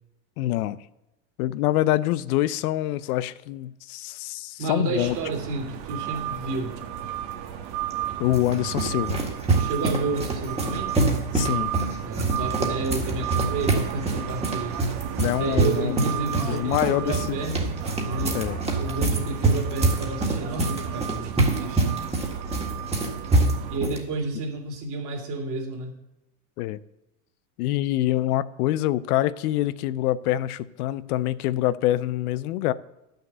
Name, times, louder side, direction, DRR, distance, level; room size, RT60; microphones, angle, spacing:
voice 1, 0.4-0.8 1.4-5.2 8.2-9.3 11.3-11.7 15.2-16.0 16.3-17.4 18.3-18.6 26.6-26.8 27.6-32.7, left 14 dB, 80° left, 0.7 m, -25 dB
voice 2, 4.6-6.8 9.5-11.0 12.0-14.8 15.2-18.4 18.7-22.0 23.7-26.0, right 3 dB, 45° right, 2.7 m, -31 dB
sound 1, 5.0-23.8, right 9 dB, 60° right, 1.5 m, -34 dB
sound 2, 7.9-24.0, right 2 dB, 15° right, 1.8 m, -26 dB
10.5 x 6.6 x 7.9 m
supercardioid pair, 115°, 44 cm